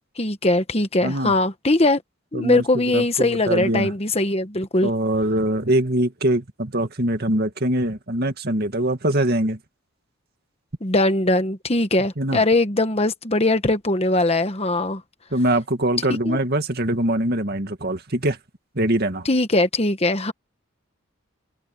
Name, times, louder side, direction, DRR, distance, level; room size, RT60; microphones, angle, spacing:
voice 1, 0.2-2.0 2.3-4.9 10.8-15.0 16.2-16.4 19.2-20.3, left 2 dB, 30° left, 1.3 m, -21 dB
voice 2, 1.0-1.3 2.3-3.9 4.8-9.6 12.2-12.4 15.3-18.4 18.8-19.3, right 1 dB, 50° right, 2.2 m, -23 dB
head